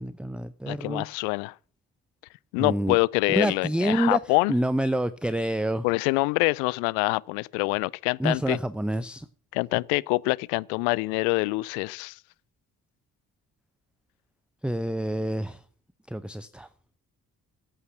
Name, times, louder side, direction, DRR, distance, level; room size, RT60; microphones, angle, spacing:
voice 1, 0.0-1.0 2.6-3.0 3.3-4.2 4.5-5.9 8.2-9.3 14.6-15.6 16.1-16.7, right 1 dB, ahead, 0.7 m, -27 dB
voice 2, 0.7-1.5 2.5-4.5 5.8-8.6 9.5-12.2, left 26 dB, 75° left, 0.5 m, -25 dB
16.0 x 8.5 x 5.8 m
figure-of-eight pair, 40°, 44 cm